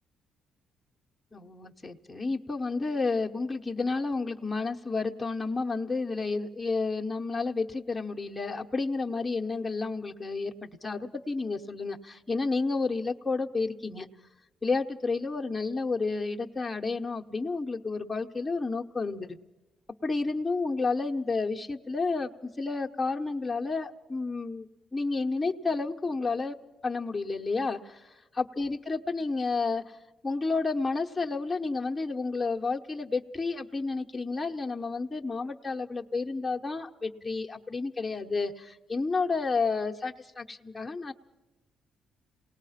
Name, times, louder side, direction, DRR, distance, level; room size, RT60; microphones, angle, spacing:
voice 1, 1.3-14.1 14.6-19.4 20.0-24.7 24.9-26.5 26.8-29.8 30.2-41.1, left 3 dB, 15° left, 1 dB, 1.0 m, -31 dB
27.5 x 19.0 x 5.8 m, 1.1 s
cardioid pair, 90°, 0 cm